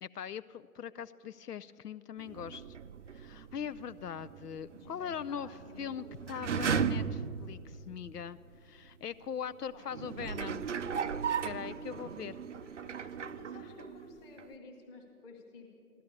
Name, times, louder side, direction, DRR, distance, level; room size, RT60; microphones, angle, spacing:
voice 1, 0.0-2.8 3.1-10.7 11.4-12.4 12.8-13.2, left 8 dB, 75° left, 13 dB, 0.6 m, -41 dB
sound 1, 2.2-8.3 8.9-9.0 9.8-14.1 14.4-14.5, right 6 dB, 50° right, 0.5 m, -37 dB
voice 2, 4.7-6.7 9.7-9.9 13.2-16.0, left 3 dB, 10° left, -2 dB, 1.1 m, -53 dB
15.0 x 12.5 x 7.1 m, 2.6 s
figure-of-eight pair, 145°, 48 cm